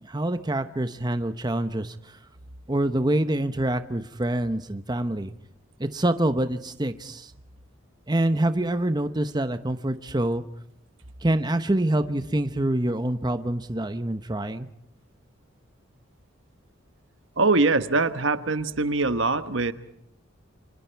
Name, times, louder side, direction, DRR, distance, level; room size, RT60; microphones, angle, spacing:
voice 1, 0.0-2.2 2.7-5.3 5.8-7.3 8.1-10.4 11.2-14.7, right 1 dB, 20° right, 10 dB, 0.9 m, -26 dB
voice 2, 17.4-19.7, right 3 dB, 65° right, 11 dB, 1.3 m, -23 dB
30.0 x 25.5 x 4.6 m, 0.75 s
head